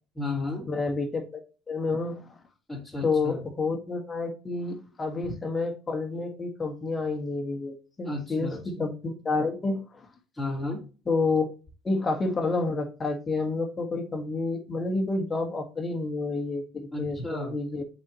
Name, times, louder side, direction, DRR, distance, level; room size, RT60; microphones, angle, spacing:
voice 1, 0.1-0.7 2.7-3.4 8.0-8.6 10.3-10.8 16.9-17.5, left 2 dB, 5° left, -8 dB, 3.3 m, -33 dB
voice 2, 0.7-1.4 1.7-2.2 3.0-8.5 8.8-9.8 11.1-11.5 11.8-17.8, left 3 dB, 25° left, 4 dB, 1.8 m, -29 dB
7.4 x 4.7 x 3.0 m, 0.34 s
hypercardioid pair, 60°, 0 cm